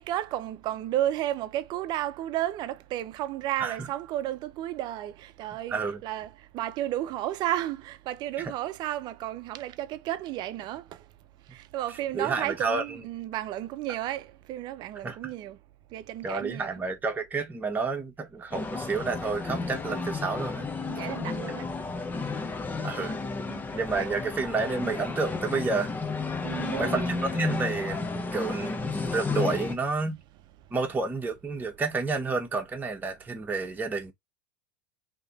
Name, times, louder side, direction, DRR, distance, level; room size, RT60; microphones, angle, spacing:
voice 1, 0.0-10.8 11.5-15.6 15.9-16.8 20.8-21.7 23.5-23.6 24.0-24.1 26.4-27.1, right 13 dB, 50° right, 0.6 m, -33 dB
voice 2, 5.7-6.0 8.4-8.5 12.1-13.0 15.0-15.3 16.2-20.7 22.8-23.2 23.7-25.9 26.8-30.2 30.7-34.1, right 4 dB, 20° right, 1.3 m, -30 dB
sound 1, 18.5-29.8, left 4 dB, 20° left, 0.8 m, -32 dB
3.2 x 3.0 x 4.2 m
hypercardioid pair, 95°, 10 cm